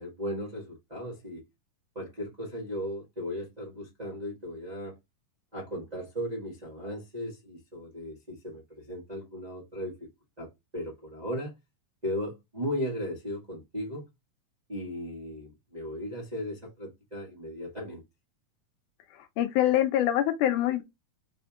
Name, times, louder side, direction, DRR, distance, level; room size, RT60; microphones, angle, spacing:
voice 1, 0.0-1.4 1.9-5.0 5.5-9.9 10.4-11.5 12.0-14.1 14.7-18.0, equal, 50° right, 0.4 m, -36 dB
voice 2, 19.4-20.8, left 12 dB, 75° left, 2.0 m, -24 dB
5.0 x 4.3 x 2.4 m
omnidirectional pair, 3.9 m